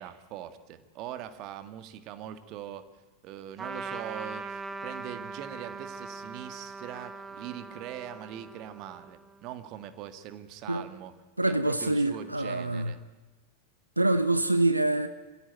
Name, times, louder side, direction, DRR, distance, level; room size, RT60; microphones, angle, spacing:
voice 1, 0.0-2.9 3.2-11.1 11.5-13.0, right 11 dB, 40° right, 11 dB, 1.8 m, -42 dB
Trumpet, 3.6-9.4, right 4 dB, 20° right, 1.4 m, -41 dB
voice 2, 11.4-12.9 14.0-15.1, right 2 dB, 85° right, 11 dB, 1.1 m, -25 dB
27.0 x 16.0 x 9.1 m, 1.2 s
figure-of-eight pair, 90°, 0 cm